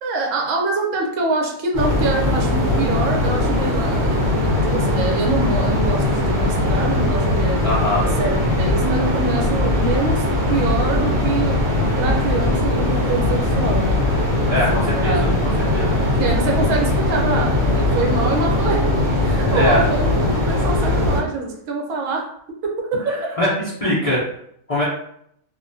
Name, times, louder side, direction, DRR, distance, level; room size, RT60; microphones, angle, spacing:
voice 1, 0.0-7.6 8.0-10.2 10.5-11.6 12.0-14.0 14.5-15.5 15.9-18.9 19.2-22.2 22.6-23.4, right 3 dB, 75° right, 0 dB, 0.9 m, -25 dB
sound 1, 1.7-21.2, left 1 dB, 50° right, 1.0 m, -20 dB
voice 2, 7.6-8.0 14.4-15.3 15.7-15.9 19.5-19.8 23.4-23.5 23.8-24.2 24.7-24.8, left 1 dB, 65° left, -8 dB, 0.3 m, -21 dB
2.3 x 2.1 x 2.6 m, 0.70 s
omnidirectional pair, 1.4 m